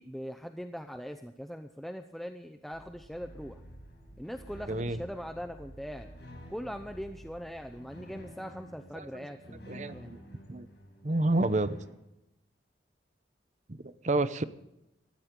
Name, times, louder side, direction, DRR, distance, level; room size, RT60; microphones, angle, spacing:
voice 1, 0.0-3.6 4.2-6.1 6.5-10.1, equal, ahead, 6 dB, 0.6 m, -41 dB
sound 1, 2.7-7.8, right 1 dB, 20° left, 4.2 m, -53 dB
sound 2, 3.2-11.9, equal, 70° left, 5.2 m, -50 dB
voice 2, 4.7-5.0 8.9-9.3 9.7-10.2 10.5-10.7 11.0-11.8 13.7-14.4, right 2 dB, 40° right, 13 dB, 0.8 m, -29 dB
19.0 x 15.0 x 3.8 m, 0.89 s
head